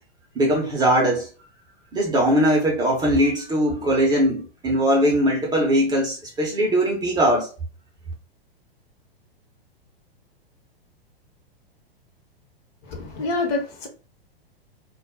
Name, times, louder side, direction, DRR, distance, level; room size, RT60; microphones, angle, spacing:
voice 1, 0.3-1.3 1.9-7.5, equal, 15° right, 0.6 m, -20 dB
voice 2, 12.8-13.9, left 3 dB, 40° left, 1.0 m, -27 dB
2.3 x 2.1 x 3.5 m
figure-of-eight pair, 100°, 30 cm